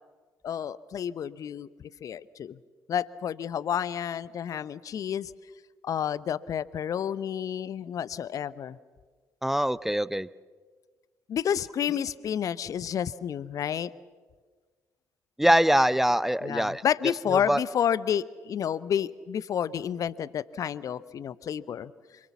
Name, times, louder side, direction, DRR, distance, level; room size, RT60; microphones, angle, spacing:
voice 1, 0.4-1.7 2.0-2.6 2.9-5.3 5.8-8.8 11.3-13.9 16.4-21.9, left 9 dB, 45° left, 19 dB, 0.7 m, -30 dB
voice 2, 9.4-10.3 15.4-16.8 17.3-17.6, equal, 5° right, 19 dB, 0.7 m, -23 dB
27.0 x 25.0 x 7.2 m, 1.5 s
figure-of-eight pair, 45°, 8 cm